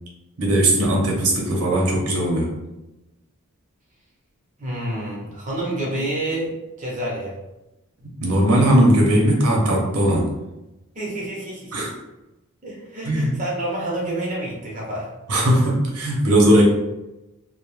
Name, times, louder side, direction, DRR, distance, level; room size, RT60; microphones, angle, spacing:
voice 1, 0.4-2.5 8.2-10.3 11.7-11.9 13.0-13.3 15.3-16.6, right 1 dB, 75° right, -1 dB, 0.7 m, -18 dB
voice 2, 4.6-7.4 10.9-11.9 12.6-15.1, right 1 dB, 35° right, -4 dB, 0.7 m, -28 dB
2.2 x 2.0 x 3.0 m, 0.97 s
head